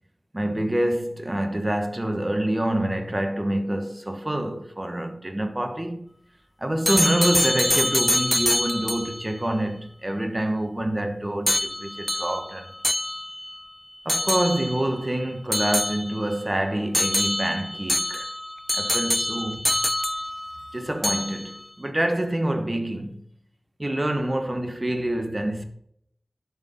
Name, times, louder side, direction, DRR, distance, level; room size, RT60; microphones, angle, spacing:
voice 1, 0.3-6.1 6.6-12.7 14.0-18.3 18.7-19.8 20.7-23.3 23.8-25.6, right 1 dB, 30° right, 1.1 m, -26 dB
sound 1, 6.9-9.2 11.5-13.6 14.1-14.9 15.5-16.4 16.9-20.7 21.0-21.6, left 1 dB, 15° left, 0.5 m, -25 dB
11.5 x 4.0 x 5.4 m
wide cardioid pair, 50°, 0 cm